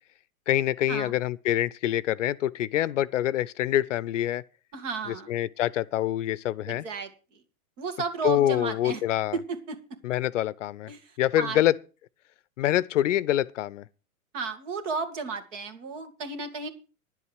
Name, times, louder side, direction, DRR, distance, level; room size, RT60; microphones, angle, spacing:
voice 1, 0.5-4.4 5.1-6.8 8.2-9.4 10.0-10.9 11.2-11.8 12.6-13.8, left 13 dB, 60° left, 0.6 m, -25 dB
voice 2, 4.7-5.3 6.7-7.4 7.8-9.0 9.3-9.8 10.9-11.6 14.3-16.7, right 4 dB, 55° right, 2.6 m, -33 dB
11.0 x 8.1 x 6.4 m
figure-of-eight pair, 105°, 43 cm